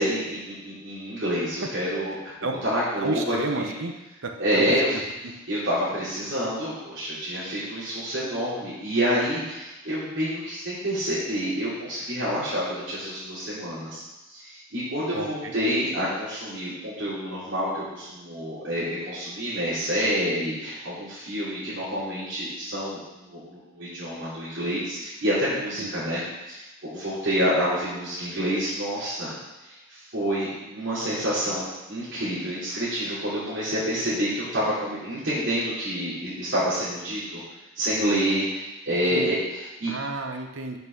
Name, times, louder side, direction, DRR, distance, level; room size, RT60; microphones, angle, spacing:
voice 1, 0.0-2.3 2.6-3.7 4.4-4.9 5.5-14.0 14.3-26.2 26.5-29.3 29.7-37.4 37.7-39.9, equal, 65° right, -11 dB, 3.0 m, -28 dB
voice 2, 3.0-3.9 4.2-4.7 5.2-5.3 15.1-15.5 25.8-25.9 39.1-39.4 39.8-40.8, right 3 dB, 85° right, 4 dB, 0.9 m, -31 dB
6.1 x 5.8 x 5.9 m, 1.0 s
head